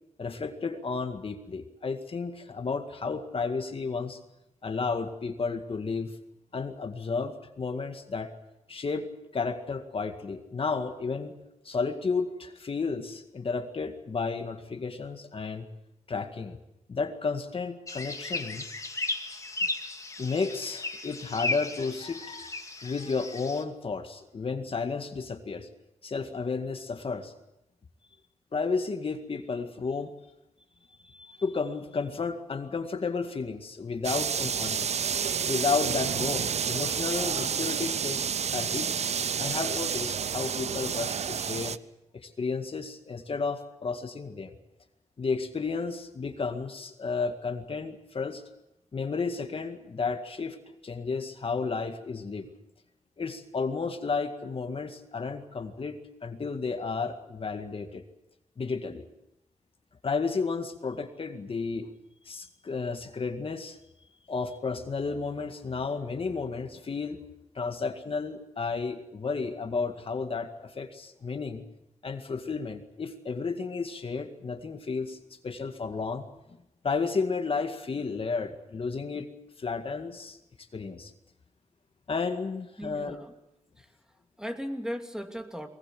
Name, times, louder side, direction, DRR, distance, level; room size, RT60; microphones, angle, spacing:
voice 1, 0.2-4.2 4.6-6.2 6.5-8.3 8.7-11.3 11.6-15.7 16.1-16.6 16.9-18.7 20.2-25.7 26.0-27.3 28.5-30.1 31.0-34.9 35.5-41.8 42.1-44.5 45.2-48.4 48.9-50.6 50.8-52.5 53.2-58.0 58.6-59.1 60.0-61.9 62.3-63.8 64.3-67.2 67.6-71.6 72.0-75.2 75.4-76.3 76.8-79.3 79.6-80.4 80.7-81.1 82.1-83.2, left 4 dB, 50° left, 6 dB, 2.0 m, -32 dB
sound 1, 17.9-23.6, left 2 dB, 25° left, 2.4 m, -35 dB
sound 2, 34.0-41.8, right 7 dB, 65° right, 0.7 m, -30 dB
voice 2, 82.8-83.3 83.8-85.7, equal, 5° right, 5 dB, 2.6 m, -37 dB
22.5 x 20.5 x 7.7 m, 0.87 s
cardioid pair, 80°, 12 cm